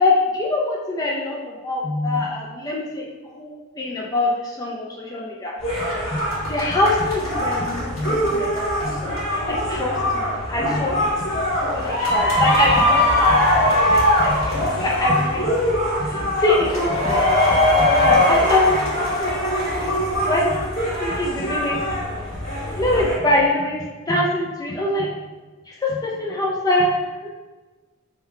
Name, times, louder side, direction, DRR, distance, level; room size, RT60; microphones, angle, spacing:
voice 1, 0.0-3.0 3.3-5.5 6.3-9.1 9.5-15.6 16.0-19.3 19.8-19.9 20.2-20.7 21.0-21.8 22.8-23.8 24.1-25.3 25.7-27.3, left 2 dB, 15° left, -3 dB, 0.4 m, -23 dB
sound 1, 5.6-23.2, left 1 dB, 75° left, 1.5 m, -21 dB
3.6 x 2.3 x 4.2 m, 1.3 s
head